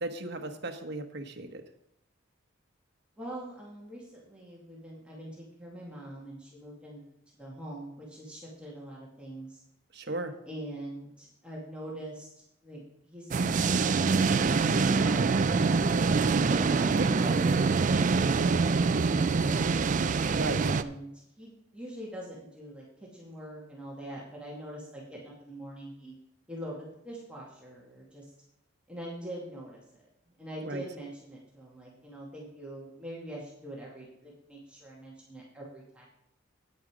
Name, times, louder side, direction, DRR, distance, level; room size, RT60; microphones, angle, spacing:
voice 1, 0.0-1.6 9.9-10.3 16.8-17.1 20.4-20.6 30.6-30.8, right 2 dB, 55° right, 6 dB, 1.2 m, -35 dB
voice 2, 3.2-7.1 7.4-9.6 10.5-12.3 12.6-12.8 13.1-15.8 16.5-18.2 20.4-22.8 23.1-26.1 26.5-28.3 28.9-30.1 30.4-36.1, right 1 dB, 5° right, -5 dB, 2.2 m, -43 dB
sound 1, 13.3-20.8, right 4 dB, 40° right, 0.4 m, -25 dB
9.3 x 9.2 x 4.9 m, 0.80 s
head